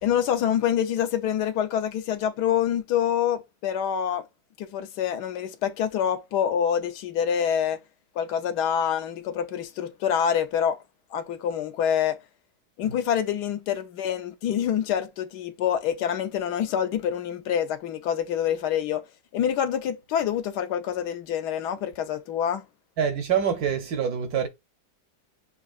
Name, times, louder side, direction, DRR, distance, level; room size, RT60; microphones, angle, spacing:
voice 1, 0.0-4.2 4.6-7.8 8.2-10.8 11.1-12.2 12.8-19.0 19.3-22.6, left 9 dB, 70° left, 1.1 m, -26 dB
voice 2, 23.0-24.5, right 8 dB, 70° right, 1.0 m, -25 dB
6.6 x 2.8 x 2.4 m
omnidirectional pair, 2.0 m